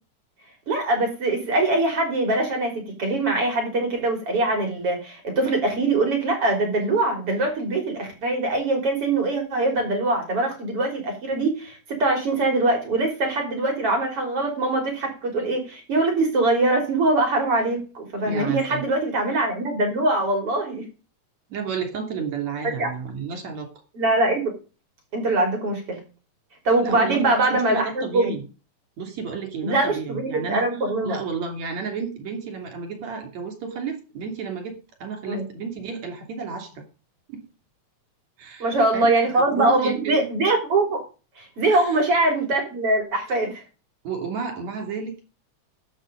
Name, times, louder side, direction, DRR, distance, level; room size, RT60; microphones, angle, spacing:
voice 1, 0.7-2.7 3.0-20.8 22.8-22.9 24.0-24.5 25.1-26.0 26.6-28.3 29.6-31.2 35.3-35.4 38.6-41.0 41.4-43.6, right 2 dB, 50° right, 3 dB, 4.7 m, -23 dB
voice 2, 18.3-18.8 21.5-23.7 26.8-28.4 29.0-30.7 31.0-36.8 37.3-37.5 38.4-38.7 38.9-39.1 39.3-40.3 41.7-42.0 44.0-45.2, right 6 dB, 70° right, 4 dB, 4.2 m, -32 dB
11.5 x 8.2 x 5.3 m, 0.33 s
omnidirectional pair, 3.3 m